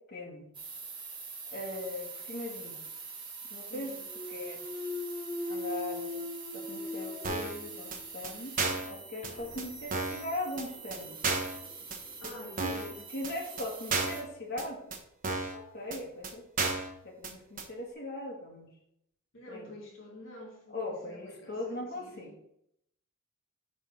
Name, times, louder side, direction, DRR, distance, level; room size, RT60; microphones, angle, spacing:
voice 1, 0.1-0.5 1.5-2.8 3.5-3.9 4.3-4.6 5.5-6.1 6.5-8.5 8.9-11.2 12.6-12.7 13.1-14.8 15.5-16.4 17.0-18.7 19.5-19.7 20.7-22.3, left 1 dB, 50° left, 2.0 m, -39 dB
sound 1, 0.5-14.2, right 5 dB, 25° right, 1.6 m, -45 dB
voice 2, 3.7-4.0 12.2-13.0 19.3-22.4, left 2 dB, 75° left, 2.3 m, -48 dB
Thump thud, 4.1-8.1 8.6-13.2, left 3 dB, 30° left, 1.1 m, -42 dB
sound 2, 7.2-7.6 7.9-8.0 8.2-8.3 8.6-8.9 9.2-9.3 9.6-9.7 9.9-10.2 10.6-10.7 10.9-11.0 11.2-11.6 11.9-12.0 12.2-12.3 12.6-12.9 13.2-13.3 13.6-13.7 13.9-14.2 14.6-14.7 14.9-15.0 15.2-15.6 15.9-16.0 16.2-16.3 16.6-16.9 17.2-17.3 17.6-17.7, right 3 dB, 40° right, 1.2 m, -32 dB
9.5 x 4.2 x 4.9 m
head